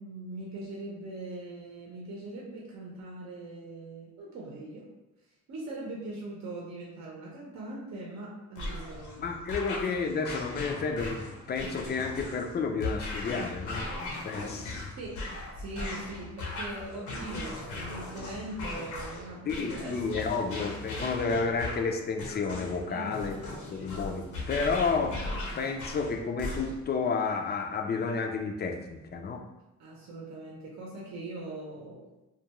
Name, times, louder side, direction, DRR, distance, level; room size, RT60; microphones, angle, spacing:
voice 1, 0.0-4.9 5.5-9.3 15.0-15.2 15.6-20.6 22.9-23.7 29.8-32.1, right 2 dB, 65° right, -3 dB, 0.7 m, -41 dB
sound 1, 8.5-26.9, left 2 dB, 75° left, 0.8 m, -38 dB
voice 2, 9.2-13.9 14.2-14.8 19.5-25.2 25.5-29.4, left 4 dB, 35° left, 3 dB, 0.4 m, -31 dB
2.3 x 2.2 x 2.9 m, 0.97 s
cardioid pair, 90°, 30 cm